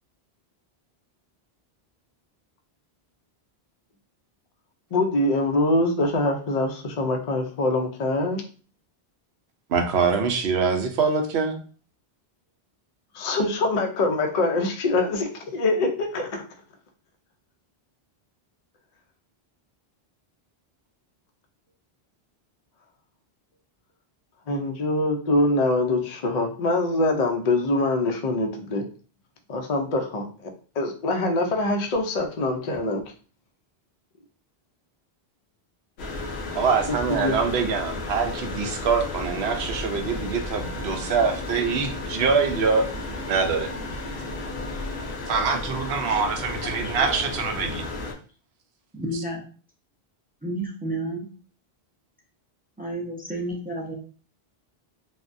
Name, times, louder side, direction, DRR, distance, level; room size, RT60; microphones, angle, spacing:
voice 1, 4.9-8.4 13.1-16.4 24.5-28.8 29.5-30.3 30.8-33.0 36.9-37.3, left 2 dB, 50° left, 4 dB, 0.5 m, -24 dB
voice 2, 9.7-11.6 36.5-42.9 43.3-43.7 45.3-47.8, right 5 dB, 80° right, 5 dB, 0.8 m, -24 dB
sound 1, 36.0-48.1, left 2 dB, 85° left, 0.9 m, -33 dB
voice 3, 46.6-47.2 48.9-49.4 50.4-51.3 52.8-53.9, right 1 dB, 15° right, -1 dB, 0.3 m, -31 dB
3.4 x 2.1 x 2.5 m, 0.39 s
omnidirectional pair, 1.1 m